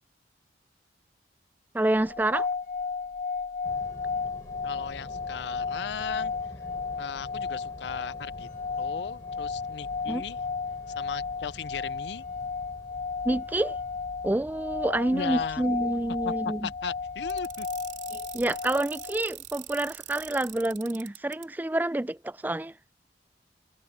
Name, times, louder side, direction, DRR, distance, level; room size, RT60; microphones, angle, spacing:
voice 1, 1.7-2.5 10.1-10.2 13.2-13.8 14.2-16.7 18.1-22.7, right 1 dB, 10° right, 0.3 m, -28 dB
sound 1, 2.0-19.2, left 5 dB, 45° left, 0.8 m, -34 dB
sound 2, 3.6-20.8, equal, 20° left, 3.7 m, -49 dB
voice 2, 4.6-6.3 7.0-8.5 8.8-10.4 10.9-12.3 15.1-15.6 16.2-16.3 16.6-17.7, left 6 dB, 75° left, 0.5 m, -37 dB
sound 3, 17.3-21.4, right 14 dB, 85° right, 3.2 m, -43 dB
head